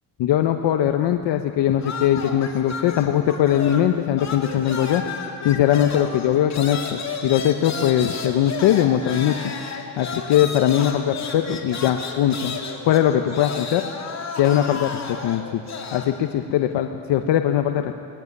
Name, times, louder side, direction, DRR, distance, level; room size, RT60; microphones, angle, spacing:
voice 1, 0.2-5.0 5.4-9.5 10.0-12.6 12.8-13.8 14.4-15.6 15.9-17.9, left 11 dB, 75° left, 6 dB, 1.1 m, -20 dB
sound 1, 1.8-3.9 4.2-16.1, left 5 dB, 40° left, 2.8 m, -32 dB
19.5 x 15.0 x 9.8 m, 2.4 s
cardioid pair, 105°, 43 cm